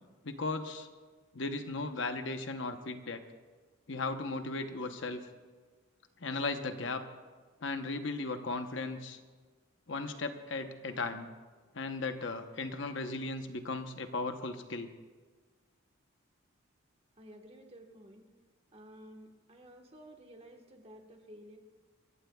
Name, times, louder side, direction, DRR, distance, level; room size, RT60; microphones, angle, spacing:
voice 1, 0.2-0.9 1.3-3.2 3.9-5.2 6.2-7.0 7.6-9.2 9.9-11.3 11.7-14.9, left 3 dB, 60° left, 7 dB, 1.0 m, -36 dB
voice 2, 17.2-18.2 18.7-21.6, equal, 30° right, 3 dB, 1.4 m, -53 dB
27.5 x 14.5 x 2.4 m, 1.4 s
head